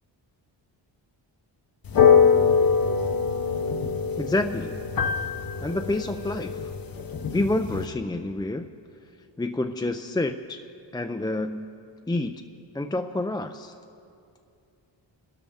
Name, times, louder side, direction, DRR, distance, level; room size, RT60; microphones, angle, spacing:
sound 1, 1.8-7.9, left 6 dB, 50° left, 0.8 m, -23 dB
voice 1, 4.2-4.8 5.6-6.6 7.3-8.7 9.4-10.6 10.9-11.7 12.1-12.4 12.7-13.7, left 2 dB, 10° left, 5 dB, 0.3 m, -28 dB
23.0 x 12.5 x 3.5 m, 2.5 s
cardioid pair, 70°, 46 cm